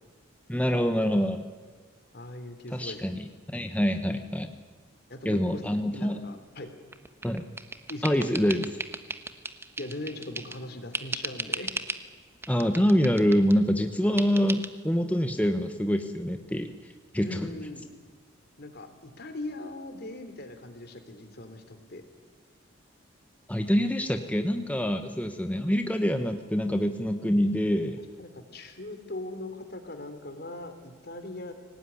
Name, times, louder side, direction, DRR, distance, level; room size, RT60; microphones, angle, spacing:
voice 1, 0.5-1.4 2.7-4.5 5.2-6.2 7.2-7.4 8.0-8.7 12.5-17.5 23.5-28.0, equal, 5° left, 6 dB, 1.0 m, -26 dB
voice 2, 2.1-3.0 5.1-5.6 5.9-6.7 7.9-8.4 9.8-11.7 17.2-17.9 18.6-22.0 24.9-25.0 28.2-31.5, left 2 dB, 55° left, 8 dB, 3.1 m, -40 dB
sound 1, 6.9-10.6 10.9-12.1 12.4-13.6 14.2-14.7, right 3 dB, 10° right, 1.1 m, -36 dB
24.0 x 18.5 x 9.9 m, 1.5 s
head